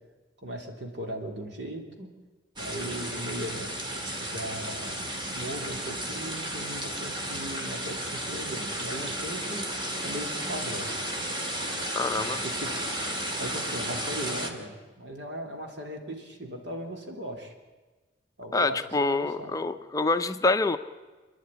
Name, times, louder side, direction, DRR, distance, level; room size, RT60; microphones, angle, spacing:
voice 1, 0.4-2.1 2.6-3.7 4.2-5.0 5.3-10.9 12.1-12.7 13.4-14.7 15.0-17.5 18.4-19.5, right 1 dB, 70° right, 2 dB, 3.4 m, -38 dB
sound 1, 2.6-14.5, right 1 dB, 25° right, 2.1 m, -33 dB
voice 2, 12.0-12.4 18.5-20.8, left 3 dB, 20° left, 8 dB, 0.6 m, -26 dB
27.5 x 10.5 x 9.9 m, 1.3 s
head